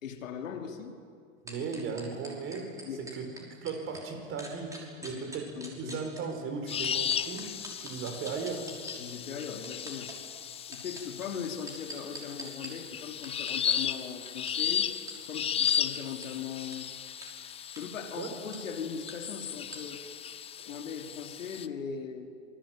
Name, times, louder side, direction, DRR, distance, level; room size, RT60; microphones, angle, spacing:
voice 1, 0.0-1.0 2.8-3.1 5.0-6.0 9.0-10.1 10.7-14.9 15.3-16.9 17.8-20.0 20.6-22.3, left 7 dB, 85° left, 4 dB, 3.2 m, -39 dB
voice 2, 1.4-3.3 3.6-5.5 5.8-8.7 18.2-18.3, right 5 dB, 30° right, 6 dB, 4.7 m, -37 dB
sound 1, 1.5-4.0 4.4-6.2 6.8-9.0 9.4-10.2 10.6-12.7 13.2-13.7 14.5-14.6 15.1-15.2 15.7-15.8 16.2-16.3 16.7-16.8 17.2-17.3 17.6-17.8 18.5-18.6 19.1-19.2 19.7-19.8, right 1 dB, 10° right, 5.9 m, -44 dB
sound 2, 6.7-21.7, left 9 dB, 15° left, 0.6 m, -35 dB
27.5 x 21.5 x 9.0 m, 2.3 s
hypercardioid pair, 120°, 39 cm